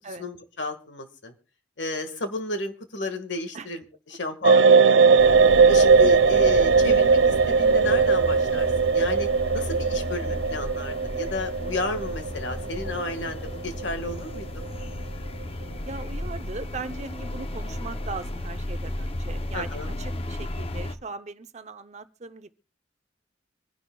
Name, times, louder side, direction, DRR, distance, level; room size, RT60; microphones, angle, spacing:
voice 1, 0.2-1.3 1.8-5.2 5.6-9.3 9.5-14.6 19.5-19.9, left 2 dB, 75° left, 1.7 m, -33 dB
sound 1, 4.4-14.4 14.6-14.8, right 5 dB, 75° right, 0.5 m, -19 dB
sound 2, 5.2-21.0, left 1 dB, 30° left, 0.7 m, -34 dB
voice 2, 15.8-22.5, right 3 dB, 40° right, 0.7 m, -39 dB
25.0 x 10.5 x 2.3 m
head